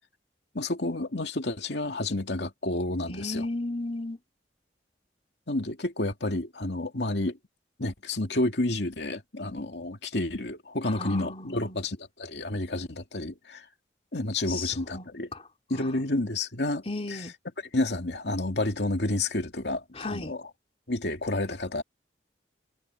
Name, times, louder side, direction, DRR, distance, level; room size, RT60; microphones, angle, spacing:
voice 1, 0.5-3.5 5.5-7.4 7.8-13.6 14.1-15.3 15.7-16.8 17.1-17.2 17.7-20.4 20.9-21.8, left 2 dB, 75° left, 2.4 m, -30 dB
voice 2, 3.1-4.2 10.9-11.8 14.5-15.1 15.3-15.4 15.7-15.9 16.9-17.3 19.9-20.3, left 2 dB, 35° left, 3.5 m, -35 dB
head